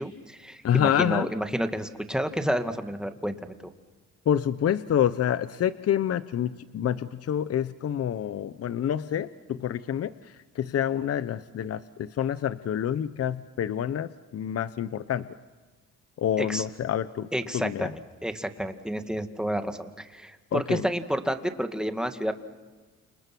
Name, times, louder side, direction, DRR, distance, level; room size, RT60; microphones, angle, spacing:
voice 1, 0.0-3.5 16.4-16.6 17.3-22.3, equal, ahead, 7 dB, 2.0 m, -30 dB
voice 2, 0.6-1.3 4.3-10.1 10.6-15.3 16.2-17.3 17.5-17.9 20.5-20.8, left 9 dB, 50° left, 14 dB, 0.8 m, -27 dB
30.0 x 27.5 x 6.1 m, 1.3 s
cardioid pair, 90°, 30 cm